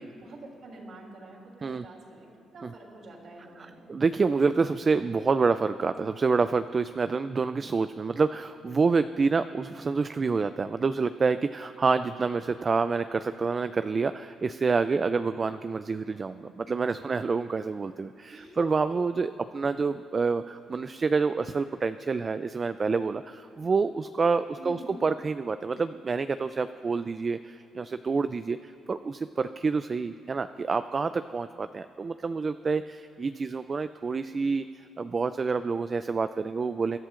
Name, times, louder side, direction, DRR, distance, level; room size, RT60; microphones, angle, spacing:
voice 1, 0.1-3.8 18.3-18.7 24.5-24.9 30.7-31.0, right 1 dB, 60° right, -2 dB, 3.3 m, -47 dB
voice 2, 3.6-37.0, right 4 dB, 35° right, 11 dB, 0.3 m, -28 dB
24.0 x 11.5 x 2.5 m, 2.7 s
cardioid pair, 90°, 0 cm